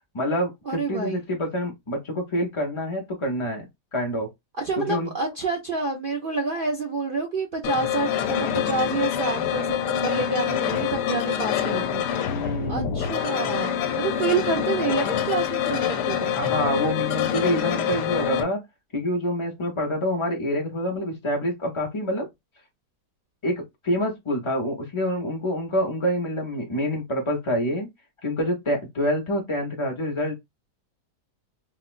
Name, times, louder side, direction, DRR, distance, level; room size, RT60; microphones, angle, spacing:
voice 1, 0.1-3.7 3.9-4.3 4.8-5.1 12.3-13.0 16.3-18.6 18.9-22.3 23.4-27.9 28.2-30.4, equal, 45° left, 0.4 m, -27 dB
voice 2, 0.7-1.2 4.6-12.0 12.7-16.4, right 4 dB, 65° right, 0.5 m, -28 dB
sound 1, 7.6-18.4, left 9 dB, 80° left, 1.2 m, -26 dB
4.1 x 2.0 x 2.4 m
omnidirectional pair, 1.8 m